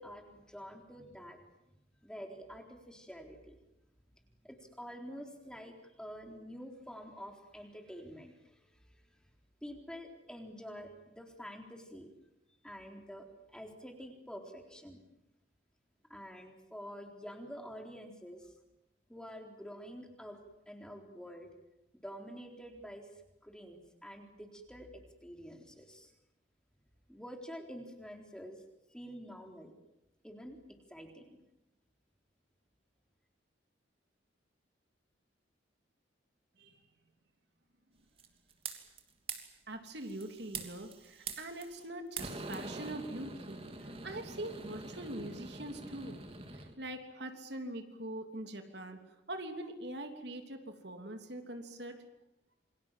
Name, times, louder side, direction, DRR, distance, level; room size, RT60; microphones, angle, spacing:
voice 1, 0.0-1.4 2.0-3.6 4.4-9.0 9.6-12.1 12.6-15.0 16.1-18.5 19.1-21.5 22.0-26.1 27.1-28.6 28.9-29.7 30.2-30.6 30.9-31.4, equal, 5° left, 3 dB, 3.9 m, -48 dB
sound 1, 38.2-39.0 39.3-39.5 40.0-41.9 42.2-46.7, right 4 dB, 30° right, 2.9 m, -44 dB
voice 2, 39.7-43.6 44.0-46.2 46.8-49.0 49.3-52.0, right 1 dB, 60° right, 6 dB, 3.3 m, -43 dB
28.0 x 25.5 x 7.6 m, 0.89 s
head